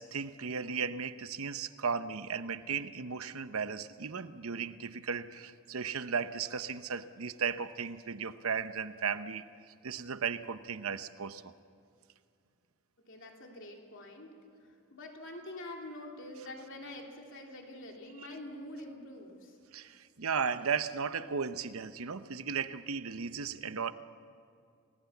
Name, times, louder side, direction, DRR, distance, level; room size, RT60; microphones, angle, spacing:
voice 1, 0.0-9.4 9.8-11.5 19.7-23.9, right 6 dB, 80° right, 12 dB, 0.9 m, -35 dB
voice 2, 13.1-14.3 14.6-19.6, left 1 dB, 60° left, 1 dB, 3.2 m, -46 dB
28.5 x 19.0 x 7.2 m, 2.4 s
head